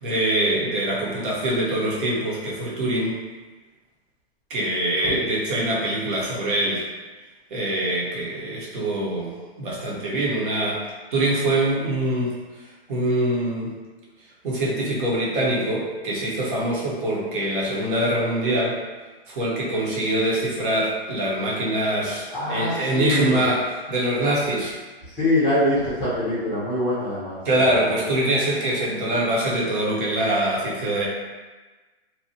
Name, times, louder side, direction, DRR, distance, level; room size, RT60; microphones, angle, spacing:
voice 1, 0.0-3.2 4.5-6.8 7.5-9.3 9.6-10.8 11.1-12.3 12.9-13.7 14.4-18.8 19.3-24.7 27.4-31.1, right 1 dB, 50° right, -5 dB, 1.0 m, -24 dB
voice 2, 22.3-23.4 25.1-27.7, left 1 dB, ahead, -11 dB, 0.7 m, -24 dB
2.8 x 2.3 x 2.7 m, 1.3 s
hypercardioid pair, 150°, 33 cm